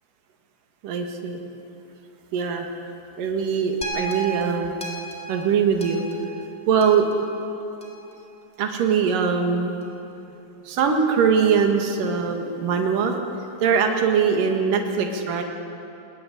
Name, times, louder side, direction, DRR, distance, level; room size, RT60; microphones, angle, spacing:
voice 1, 0.8-1.4 2.3-2.7 3.2-4.8 5.3-6.0 6.7-7.1 8.6-9.8 10.7-13.2 13.6-15.4, right 6 dB, 65° right, 3 dB, 3.3 m, -22 dB
sound 1, 3.8-8.1 8.8-8.9, right 4 dB, ahead, 2.9 m, -35 dB
20.5 x 19.0 x 10.0 m, 2.9 s
omnidirectional pair, 4.4 m